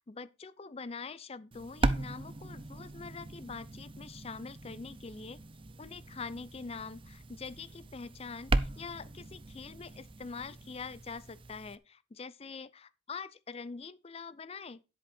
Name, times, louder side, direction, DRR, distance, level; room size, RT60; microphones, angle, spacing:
voice 1, 0.0-5.4 5.8-14.8, left 4 dB, 35° left, 0.5 m, -44 dB
sound 1, 1.5-11.8, right 2 dB, 30° right, 0.5 m, -38 dB
sound 2, 2.1-11.5, equal, 45° right, 2.9 m, -60 dB
10.5 x 8.0 x 4.3 m
head